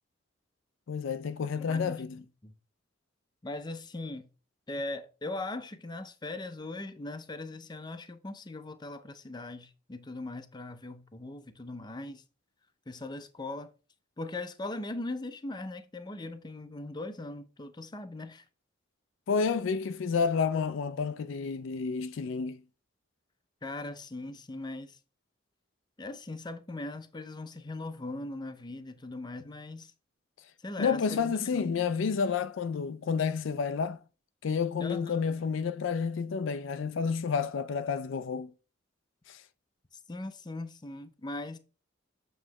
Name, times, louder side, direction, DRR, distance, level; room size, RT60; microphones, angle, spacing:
voice 1, 0.9-2.2 19.3-22.6 30.8-34.0 34.4-38.5 39.3-39.4, left 5 dB, 80° left, 0.4 m, -30 dB
voice 2, 1.5-2.5 3.4-4.3 4.7-12.2 12.9-13.7 14.2-18.5 23.6-25.0 26.0-29.9 30.6-31.8 34.8-35.4 39.9-41.6, left 2 dB, 25° left, 0.6 m, -40 dB
7.6 x 3.1 x 4.8 m
head